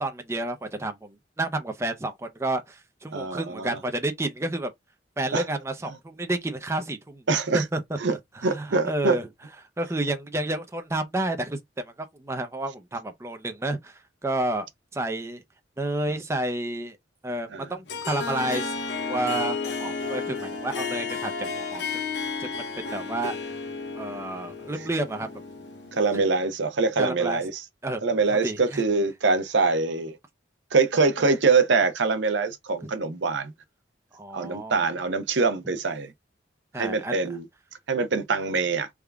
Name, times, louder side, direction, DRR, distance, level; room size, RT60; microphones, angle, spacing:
voice 1, 0.0-4.7 5.2-7.2 7.5-7.8 8.4-9.3 9.8-11.9 12.2-14.7 14.9-15.4 15.8-17.0 17.2-18.7 19.0-21.8 22.4-23.4 24.0-25.3 27.0-27.4 27.8-28.0 28.4-28.8 32.8-32.9 34.1-34.8 36.7-37.2, right 1 dB, 15° right, 0.5 m, -30 dB
voice 2, 3.1-3.8 5.3-5.4 7.3-7.6 8.0-8.2 8.4-9.2 17.5-17.7 25.9-27.6 28.0-30.2 30.7-33.5 34.3-36.1 36.8-37.5 37.9-38.9, right 4 dB, 80° right, 0.7 m, -24 dB
Harp, 17.9-26.3, left 4 dB, 70° left, 0.7 m, -32 dB
3.6 x 2.3 x 3.3 m
head